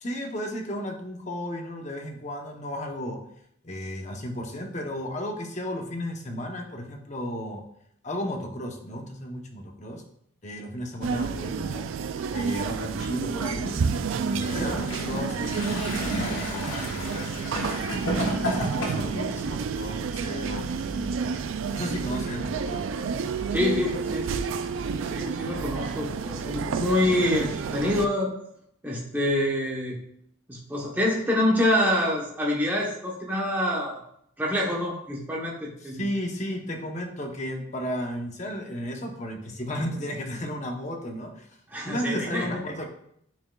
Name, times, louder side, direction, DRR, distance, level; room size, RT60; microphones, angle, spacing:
voice 1, 0.0-3.2 3.6-7.6 8.0-10.0 10.4-11.9 12.3-17.4 17.9-22.9 35.8-41.5 41.8-42.9, equal, 35° left, 2 dB, 0.9 m, -34 dB
sound 1, 11.0-28.1, right 5 dB, 70° right, 0.3 m, -30 dB
Gurgling / Toilet flush, 14.3-19.2 20.0-20.1, equal, 80° left, 1.7 m, -31 dB
voice 2, 23.5-28.3 28.8-30.0 30.5-34.0 34.4-36.1 41.7-42.6, left 1 dB, 10° right, -3 dB, 1.0 m, -26 dB
9.3 x 4.6 x 2.3 m, 0.71 s
head